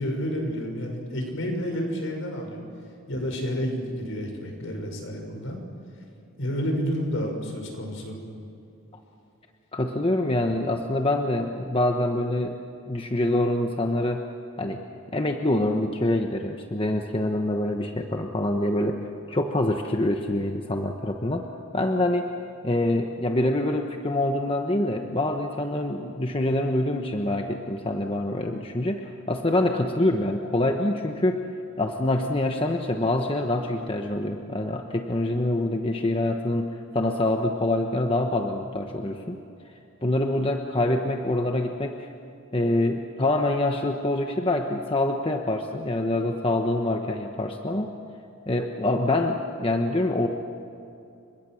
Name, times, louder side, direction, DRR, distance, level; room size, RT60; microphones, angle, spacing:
voice 1, 0.0-2.6 3.1-5.6 6.4-8.2, equal, 70° left, 3 dB, 6.3 m, -30 dB
voice 2, 9.7-12.6 12.9-14.2 14.6-14.8 15.1-21.5 21.7-22.3 22.6-31.5 31.8-39.4 40.0-42.1 42.5-47.9 48.5-50.3, left 1 dB, 25° left, 3 dB, 1.2 m, -25 dB
30.0 x 25.0 x 6.4 m, 2.7 s
head